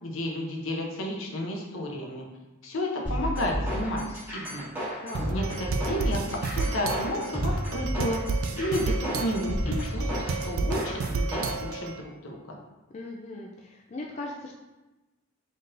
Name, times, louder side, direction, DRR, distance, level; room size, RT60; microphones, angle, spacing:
voice 1, 0.0-2.2 2.6-4.0 4.3-4.7 5.3-8.2 8.6-12.4, left 1 dB, 80° left, 0 dB, 0.7 m, -32 dB
sound 1, 3.0-11.5, equal, 10° right, 1.3 m, -32 dB
voice 2, 5.0-5.4 12.9-14.6, left 2 dB, 35° left, -1 dB, 0.3 m, -39 dB
sound 2, 5.1-12.0, right 3 dB, 85° right, 0.3 m, -31 dB
4.0 x 3.7 x 2.5 m, 1.1 s
head